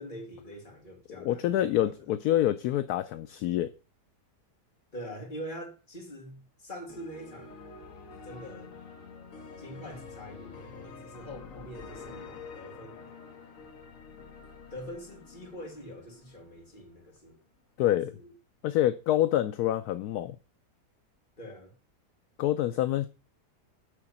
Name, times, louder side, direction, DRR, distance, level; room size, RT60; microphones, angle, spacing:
voice 1, 0.0-2.0 4.9-7.6 8.2-8.7 9.6-13.0 14.7-17.4 17.8-18.3 21.4-21.7, equal, 30° left, 2.6 m, -44 dB
voice 2, 1.2-3.7 17.8-18.1 18.6-20.4 22.4-23.1, left 13 dB, 70° left, 1.0 m, -26 dB
sound 1, 6.9-16.9, left 4 dB, 55° left, 1.5 m, -47 dB
9.8 x 3.8 x 7.2 m
omnidirectional pair, 1.8 m